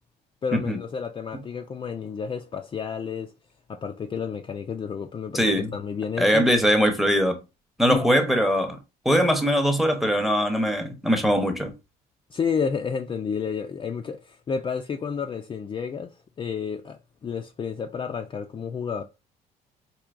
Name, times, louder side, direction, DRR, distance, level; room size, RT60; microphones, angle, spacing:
voice 1, 0.4-3.3 3.7-6.5 7.9-8.2 12.3-19.0, left 6 dB, 30° left, 0.4 m, -31 dB
voice 2, 5.3-5.7 6.2-7.4 7.8-8.8 9.0-11.7, equal, ahead, 0.8 m, -21 dB
4.5 x 2.7 x 2.5 m
cardioid pair, 110°, 17 cm